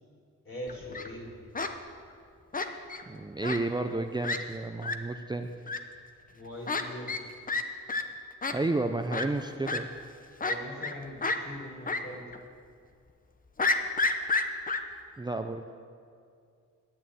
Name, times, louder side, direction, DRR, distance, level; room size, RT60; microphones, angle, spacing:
voice 1, 0.4-1.3 6.3-7.1 8.9-9.0 10.4-12.2, left 1 dB, 45° left, -1 dB, 3.7 m, -41 dB
Fowl, 0.7-1.1 1.5-1.7 2.5-3.0 3.4-3.6 3.9-4.0 4.2-4.4 4.8-4.9 5.7-5.8 6.7-6.8 7.1-7.2 7.5-7.6 7.9-8.0 8.4-8.5 9.1-9.3 9.7-9.8 10.4-10.9 11.2-11.4 11.9-12.0 12.3-12.4 13.6-14.8, left 3 dB, 30° left, 0.8 m, -29 dB
voice 2, 3.1-5.5 8.5-9.9 15.2-15.6, right 2 dB, 15° right, 6 dB, 0.5 m, -31 dB
11.0 x 9.0 x 9.1 m, 2.3 s
wide cardioid pair, 115°, 30 cm